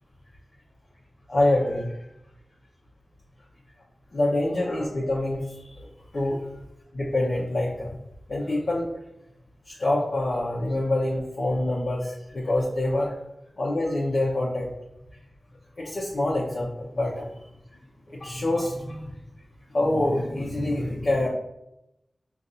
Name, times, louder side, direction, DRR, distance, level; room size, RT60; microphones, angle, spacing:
voice 1, 1.3-2.0 4.1-5.8 6.1-6.4 6.9-8.0 8.3-8.9 9.7-13.1 13.6-14.7 15.8-17.3 18.1-19.1 19.7-21.3, left 1 dB, 60° left, -5 dB, 0.8 m, -26 dB
5.5 x 2.5 x 2.6 m, 0.86 s
wide cardioid pair, 70°, 0 cm